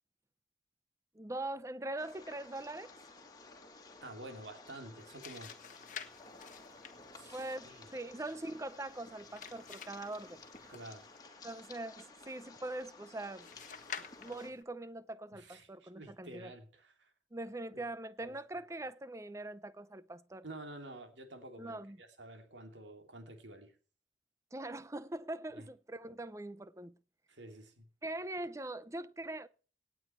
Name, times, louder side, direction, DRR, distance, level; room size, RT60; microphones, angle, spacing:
voice 1, 1.1-2.9 7.3-10.7 11.4-13.5 14.2-16.5 17.3-20.4 21.6-22.0 24.5-27.0 28.0-29.5, right 2 dB, 15° right, 0.6 m, -42 dB
sound 1, 2.0-14.5, left 3 dB, 20° left, 2.3 m, -54 dB
voice 2, 4.0-5.5 7.1-7.9 10.7-11.1 15.3-17.1 18.2-18.4 20.4-23.7 25.5-25.7 27.3-27.8, right 1 dB, 80° right, 2.8 m, -50 dB
sound 2, 4.9-11.2 13.4-14.6, left 7 dB, 45° left, 1.3 m, -50 dB
18.0 x 9.1 x 4.5 m
head